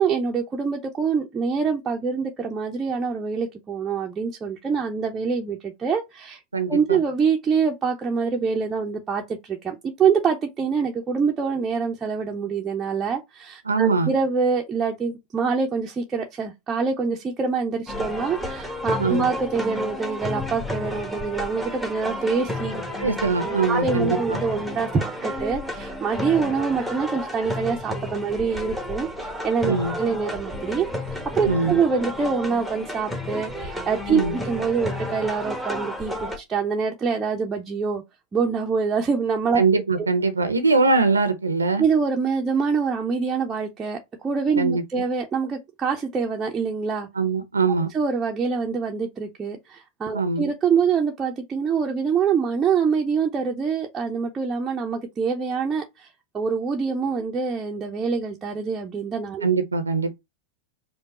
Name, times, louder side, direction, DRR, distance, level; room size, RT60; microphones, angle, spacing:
voice 1, 0.0-6.4 6.7-22.8 23.7-30.9 31.3-38.0 38.3-39.6 41.8-47.1 47.9-56.1 56.3-59.5, right 5 dB, 20° right, 0.7 m, -25 dB
voice 2, 6.5-7.0 13.7-14.1 19.0-19.3 23.0-24.4 29.6-30.0 31.5-31.8 34.1-34.4 39.6-41.8 44.6-44.8 47.1-47.9 50.1-50.5 59.4-60.1, right 4 dB, 75° right, 0.7 m, -22 dB
sound 1, 17.9-36.4, left 1 dB, 5° left, 1.1 m, -31 dB
5.0 x 2.3 x 4.2 m
figure-of-eight pair, 90°, 0 cm